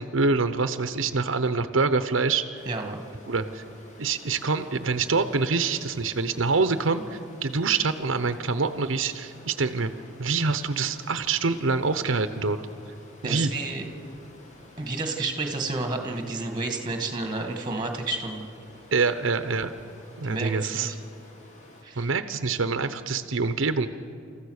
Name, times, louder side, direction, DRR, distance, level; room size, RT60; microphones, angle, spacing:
voice 1, 0.0-2.4 3.3-3.6 4.0-9.9 10.2-12.6 13.2-13.5 18.9-19.7 20.2-20.9 22.0-23.9, right 4 dB, 80° right, 10 dB, 0.8 m, -25 dB
Stream, 2.5-21.8, left 2 dB, 40° left, 2.4 m, -51 dB
voice 2, 2.7-3.0 13.2-13.9 14.8-18.5 20.2-21.0 21.8-22.1, right 3 dB, 20° right, 4 dB, 2.0 m, -31 dB
29.0 x 14.5 x 6.5 m, 2.7 s
head